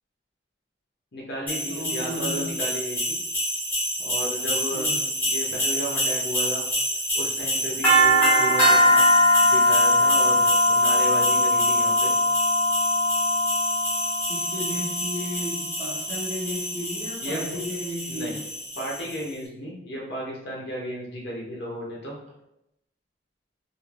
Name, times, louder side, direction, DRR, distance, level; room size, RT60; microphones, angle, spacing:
voice 1, 1.1-3.2 4.0-4.9 5.2-6.6 7.1-9.1 9.4-12.1 17.2-17.4 18.1-18.4 18.8-22.1, equal, 60° left, -3 dB, 0.6 m, -33 dB
sound 1, 1.5-19.2, equal, 10° left, 0.9 m, -23 dB
voice 2, 1.7-2.4 4.7-5.1 14.3-18.4, equal, 40° right, -4 dB, 0.8 m, -34 dB
2.5 x 2.4 x 3.1 m, 0.85 s
head